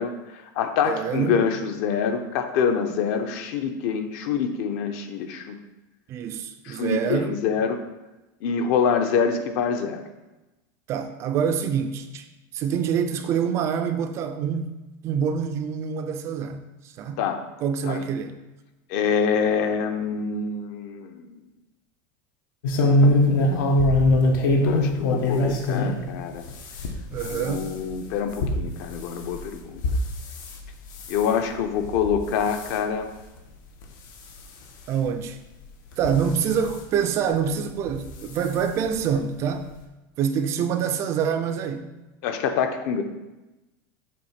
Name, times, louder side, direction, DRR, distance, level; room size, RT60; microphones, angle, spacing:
voice 1, 0.0-5.6 6.6-7.8 8.4-10.0 17.2-17.4 17.8-18.0 18.9-21.4 24.6-26.5 27.3-29.8 31.1-33.1 42.2-43.0, left 6 dB, 50° left, 0.7 m, -26 dB
voice 2, 0.8-1.4 6.1-7.4 10.9-12.3 12.5-14.7 15.0-16.6 17.0-17.2 17.6-18.4 25.7-25.8 27.1-27.7 34.9-35.4 36.0-39.7 40.2-41.9, right 7 dB, 30° right, 0.4 m, -26 dB
sound 1, 22.6-26.0 26.4-30.6 30.9-31.3 31.8-32.2 32.5-32.8 33.4-33.5 33.8-33.9 35.1-35.2 35.9-36.7 37.9-38.1 38.4-38.5 38.9-39.0, left 1 dB, 80° left, 1.2 m, -22 dB
7.6 x 3.5 x 5.8 m
supercardioid pair, 175°, 10 cm